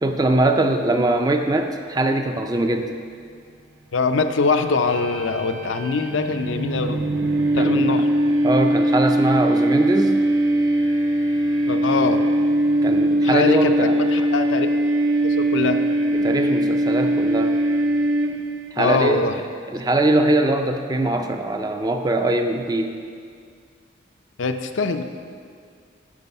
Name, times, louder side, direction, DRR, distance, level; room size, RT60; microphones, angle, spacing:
voice 1, 0.0-2.9 7.6-8.1 8.4-10.2 12.8-14.1 16.1-17.6 18.7-19.3 19.7-23.0, right 2 dB, 20° right, 6 dB, 0.4 m, -22 dB
voice 2, 3.9-7.0 7.5-8.1 11.7-12.2 13.2-14.8 15.2-15.8 18.8-19.3 24.4-25.0, left 4 dB, 80° left, 7 dB, 0.5 m, -23 dB
sound 1, 4.7-18.7, right 1 dB, 80° right, 0.9 m, -21 dB
9.7 x 4.7 x 5.4 m, 2.2 s
head